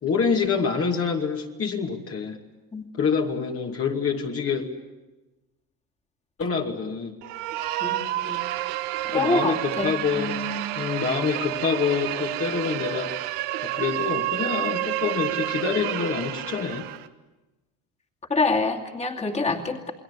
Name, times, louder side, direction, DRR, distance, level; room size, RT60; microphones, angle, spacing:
voice 1, 0.0-2.4 2.9-4.6 6.4-7.1 9.1-10.4 10.8-13.1 13.6-16.8, left 6 dB, 40° left, 1 dB, 2.5 m, -26 dB
sound 1, 7.2-17.1, right 15 dB, 90° right, 1.5 m, -29 dB
voice 2, 7.8-8.4 9.0-10.7 18.3-19.9, left 3 dB, 20° left, 1 dB, 2.7 m, -26 dB
29.5 x 21.5 x 8.4 m, 1.1 s
cardioid pair, 115°, 36 cm